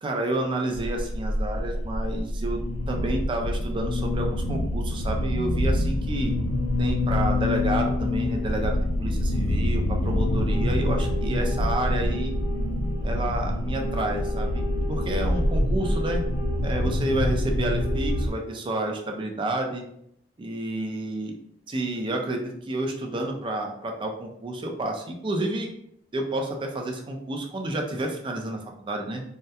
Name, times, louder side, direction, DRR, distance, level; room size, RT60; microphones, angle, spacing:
voice 1, 0.0-6.3 6.8-12.3 13.0-16.2 16.6-19.8 20.4-21.4 21.7-25.7 26.1-29.2, right 1 dB, 30° right, 2 dB, 0.3 m, -30 dB
sound 1, 0.7-18.3, left 1 dB, 85° left, 0.3 m, -26 dB
2.7 x 2.1 x 2.2 m, 0.74 s
head